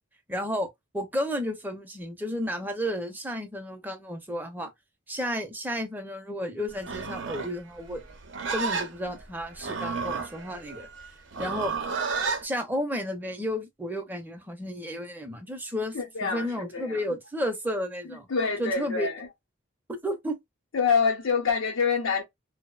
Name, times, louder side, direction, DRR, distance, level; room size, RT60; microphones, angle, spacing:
voice 1, 0.3-4.7 5.1-8.0 8.5-10.9 11.4-11.7 12.4-18.3 18.6-19.1 20.0-20.4, equal, 10° right, 0.5 m, -32 dB
Livestock farm animals working animals, 6.8-12.4, right 4 dB, 65° right, 0.6 m, -32 dB
voice 2, 15.9-17.0 18.3-19.3 20.7-22.2, left 5 dB, 90° left, 0.6 m, -26 dB
2.7 x 2.0 x 2.3 m
head